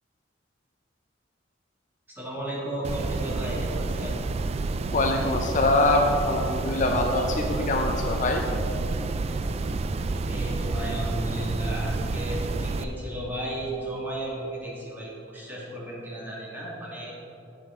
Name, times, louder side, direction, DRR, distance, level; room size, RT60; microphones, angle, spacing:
voice 1, 2.2-4.2 10.3-17.1, right 1 dB, 10° right, -5 dB, 1.9 m, -34 dB
sound 1, 2.8-12.8, right 3 dB, 35° right, 0.3 m, -29 dB
voice 2, 4.9-8.4, left 2 dB, 40° left, 2 dB, 0.6 m, -24 dB
10.0 x 7.8 x 3.6 m, 2.9 s
head